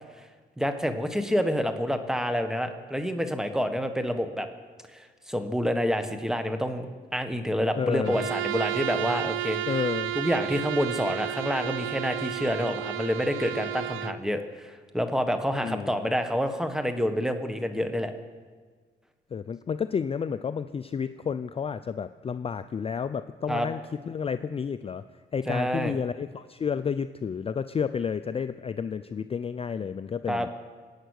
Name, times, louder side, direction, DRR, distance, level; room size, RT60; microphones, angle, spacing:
voice 1, 0.6-4.5 4.9-6.9 7.1-9.6 10.1-18.1 23.5-23.7 25.5-26.0 30.3-30.5, equal, 5° right, 8 dB, 1.4 m, -28 dB
voice 2, 7.8-8.2 9.7-10.1 15.6-16.0 19.3-25.0 25.3-30.5, left 6 dB, 30° left, 12 dB, 0.4 m, -31 dB
Bowed string instrument, 8.0-14.2, right 13 dB, 75° right, 0.7 m, -32 dB
23.5 x 9.0 x 6.5 m, 1.5 s
cardioid pair, 90°, 20 cm